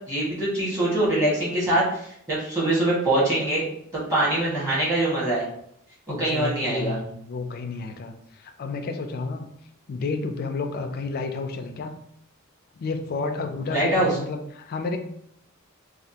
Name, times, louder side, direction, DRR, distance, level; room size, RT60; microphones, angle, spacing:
voice 1, 0.1-3.6 3.9-5.4 6.2-7.0 13.7-14.1, right 1 dB, 15° right, -8 dB, 1.4 m, -23 dB
voice 2, 6.1-9.5 9.9-11.9 12.8-15.0, left 3 dB, 45° left, 6 dB, 0.4 m, -31 dB
3.3 x 2.4 x 2.8 m, 0.71 s
head